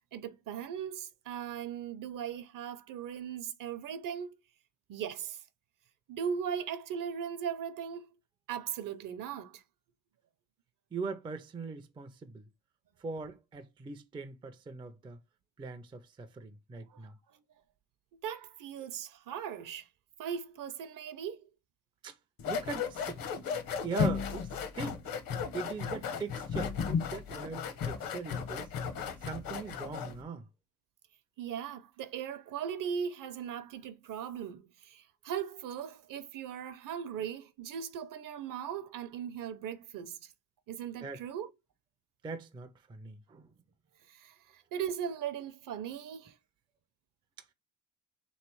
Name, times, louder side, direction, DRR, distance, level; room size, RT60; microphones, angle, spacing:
voice 1, 0.1-4.3 4.9-5.4 6.1-8.1 8.5-9.6 16.9-17.1 18.2-19.9 20.2-21.4 31.4-40.3 40.7-41.5 44.1-46.3, right 8 dB, 55° right, 0.7 m, -38 dB
voice 2, 10.9-12.4 13.0-15.2 15.6-17.1 22.0-22.1 22.5-23.2 23.5-23.6 23.8-24.5 24.7-25.0 25.5-28.7 29.2-30.4 41.0-41.2 42.2-43.5, right 4 dB, 15° right, 0.4 m, -41 dB
sound 1, 22.4-30.2, left 6 dB, 65° left, 0.9 m, -35 dB
3.3 x 3.1 x 4.5 m
cardioid pair, 150°, 38 cm